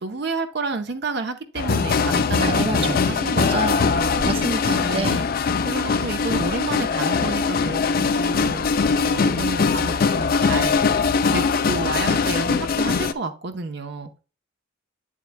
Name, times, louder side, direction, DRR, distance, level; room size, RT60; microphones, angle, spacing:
voice 1, 0.0-4.2 4.8-5.3 5.6-10.9 11.3-14.2, right 3 dB, 55° right, 0.8 m, -30 dB
sound 1, 1.5-13.1, left 5 dB, 45° left, 0.4 m, -21 dB
voice 2, 2.4-5.2, right 3 dB, 30° right, 0.5 m, -29 dB
8.5 x 7.4 x 2.2 m
head